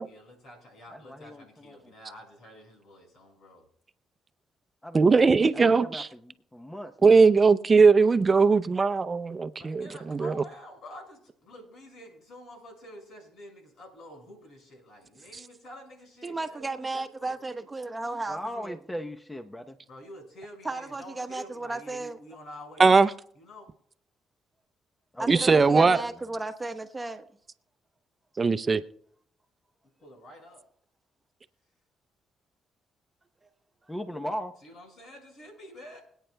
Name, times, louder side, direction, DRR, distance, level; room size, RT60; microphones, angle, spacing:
voice 1, 0.0-3.7 9.6-17.4 19.9-23.1 23.4-23.7 25.3-25.9 30.0-30.6 34.6-36.0, left 1 dB, 70° left, 5.6 m, -48 dB
voice 2, 0.9-1.9 4.8-7.3 18.3-19.8 25.1-26.0 33.9-34.5, equal, 15° left, 0.9 m, -39 dB
voice 3, 4.9-6.1 7.0-10.3 22.8-23.1 25.3-26.0 28.4-28.8, right 4 dB, 40° right, 0.6 m, -20 dB
voice 4, 16.2-18.8 20.6-22.2 25.2-27.3, right 2 dB, 25° right, 1.0 m, -34 dB
25.5 x 9.1 x 2.3 m
supercardioid pair, 60°, 0 cm